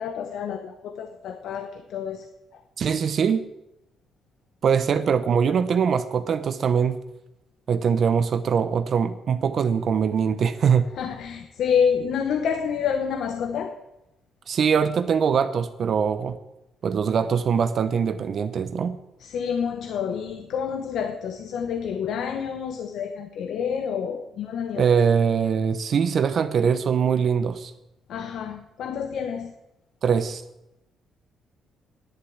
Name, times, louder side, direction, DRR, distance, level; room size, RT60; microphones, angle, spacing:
voice 1, 0.0-2.3 2.5-2.6 10.9-13.8 19.2-24.8 28.1-29.5, left 7 dB, 75° left, 7 dB, 1.0 m, -28 dB
voice 2, 2.8-3.5 4.6-7.0 7.7-10.9 14.5-16.4 16.8-19.0 24.8-27.7 30.0-30.4, right 6 dB, 55° right, 11 dB, 0.8 m, -22 dB
10.5 x 8.2 x 8.6 m, 0.89 s
cardioid pair, 90°, 0 cm